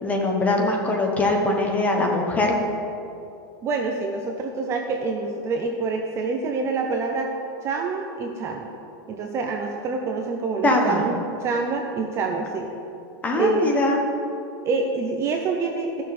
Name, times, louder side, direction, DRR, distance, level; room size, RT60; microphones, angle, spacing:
voice 1, 0.0-2.6 10.6-11.0 13.2-14.0, left 2 dB, 10° left, 1 dB, 1.0 m, -22 dB
voice 2, 3.6-7.3 7.6-8.7 9.1-12.7 13.3-13.9 14.6-16.0, right 4 dB, 25° right, 3 dB, 0.6 m, -26 dB
14.0 x 6.4 x 4.2 m, 2.7 s
supercardioid pair, 165°, 12 cm